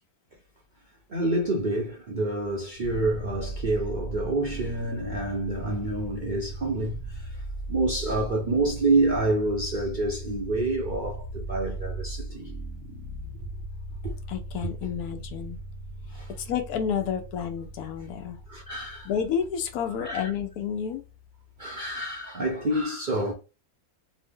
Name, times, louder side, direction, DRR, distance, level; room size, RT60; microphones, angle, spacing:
voice 1, 1.1-12.5 14.0-14.1 16.1-16.3 18.5-19.1 20.0-20.3 21.6-23.3, right 2 dB, 55° right, 0.5 m, -28 dB
sound 1, 2.7-21.8, right 1 dB, 40° left, 1.3 m, -39 dB
voice 2, 14.3-15.6 16.4-18.4 19.0-21.0, left 8 dB, 85° left, 1.1 m, -30 dB
3.0 x 2.0 x 3.5 m
omnidirectional pair, 1.6 m